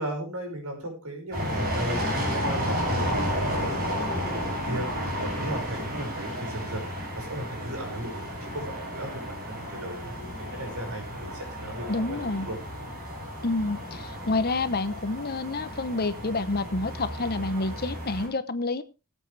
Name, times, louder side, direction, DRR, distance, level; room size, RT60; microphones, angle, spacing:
voice 1, 0.0-12.6, right 1 dB, 85° right, 4 dB, 5.6 m, -36 dB
sound 1, 1.3-18.3, equal, 45° right, 6.8 m, -32 dB
voice 2, 11.9-12.5 13.4-18.8, left 3 dB, 45° left, 12 dB, 0.9 m, -28 dB
20.5 x 8.3 x 3.4 m, 0.30 s
head